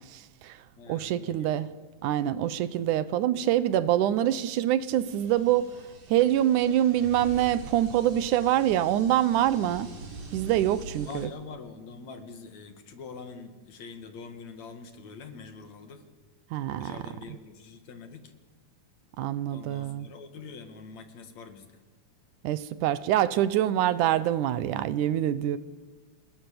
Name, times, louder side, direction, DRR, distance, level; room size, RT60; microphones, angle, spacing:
voice 1, 0.1-0.6 0.9-1.7 2.0-5.8 6.1-9.9 10.3-11.3 16.5-17.0 19.2-20.1 22.4-25.6, right 12 dB, 85° right, 2.4 m, -25 dB
voice 2, 0.8-1.5 11.0-16.0 16.8-18.3 19.5-21.7, left 5 dB, 65° left, 3.2 m, -44 dB
sound 1, 4.9-11.3, right 3 dB, 65° right, 4.8 m, -44 dB
27.5 x 20.0 x 6.9 m
omnidirectional pair, 3.5 m